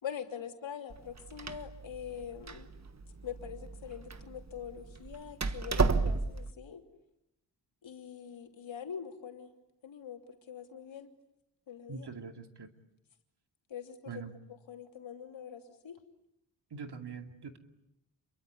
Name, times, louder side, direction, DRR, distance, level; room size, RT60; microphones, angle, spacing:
voice 1, 0.0-2.7 3.2-6.8 7.8-9.5 9.8-10.2 10.5-11.1 11.7-12.1 13.7-14.2 14.5-16.0, left 8 dB, 80° left, 4 dB, 3.2 m, -44 dB
Door, 0.9-6.5, right 4 dB, 35° right, 1.5 m, -34 dB
voice 2, 11.9-12.7 14.1-14.3 16.7-17.6, right 5 dB, 60° right, 5 dB, 2.6 m, -43 dB
29.0 x 23.0 x 8.4 m, 0.85 s
cardioid pair, 80°, 45 cm